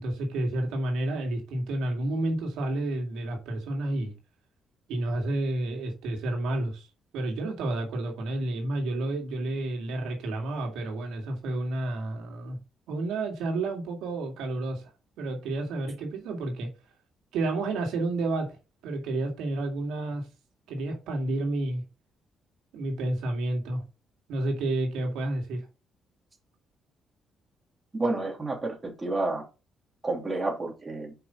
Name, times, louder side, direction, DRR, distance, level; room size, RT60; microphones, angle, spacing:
voice 1, 0.0-4.1 4.9-6.9 7.1-12.6 12.9-14.8 15.2-16.7 17.3-18.6 18.8-20.3 20.7-21.8 22.7-23.8 24.3-25.6, right 2 dB, 90° right, 2.2 m, -30 dB
voice 2, 27.9-29.5 30.0-31.1, right 2 dB, 25° right, 2.9 m, -30 dB
5.5 x 5.4 x 5.6 m
cardioid pair, 90°, 0 cm